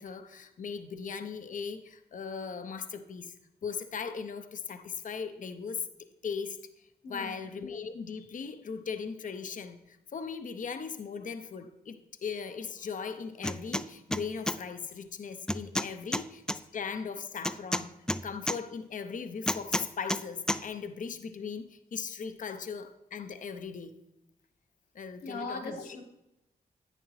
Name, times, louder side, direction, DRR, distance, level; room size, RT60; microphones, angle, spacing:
voice 1, 0.0-3.3 3.6-5.9 6.2-16.4 16.7-17.9 18.2-23.9 24.9-25.9, left 6 dB, 55° left, 9 dB, 0.7 m, -38 dB
voice 2, 7.0-7.4 25.2-26.0, left 3 dB, 80° left, 0 dB, 1.7 m, -39 dB
sound 1, 13.4-13.8 14.1-14.6 15.5-16.6 17.4-18.6 19.5-20.2 20.5-20.6, left 1 dB, 5° left, 0.4 m, -30 dB
10.5 x 8.9 x 3.2 m, 0.89 s
cardioid pair, 60°, 16 cm